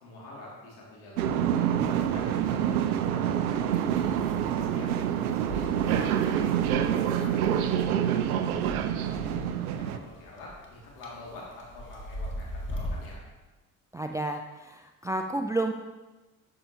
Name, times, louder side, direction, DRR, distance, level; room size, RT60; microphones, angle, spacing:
voice 1, 0.0-4.1 4.5-4.9 5.2-8.5 9.1-13.2, left 2 dB, 70° left, -4 dB, 2.5 m, -46 dB
sound 1, 1.2-10.0, right 9 dB, 75° right, 0.6 m, -27 dB
sound 2, 1.8-13.2, equal, 25° left, 1.7 m, -42 dB
voice 2, 13.9-15.8, right 2 dB, 10° right, 5 dB, 0.3 m, -31 dB
12.0 x 5.6 x 2.9 m, 1.1 s
figure-of-eight pair, 45°, 44 cm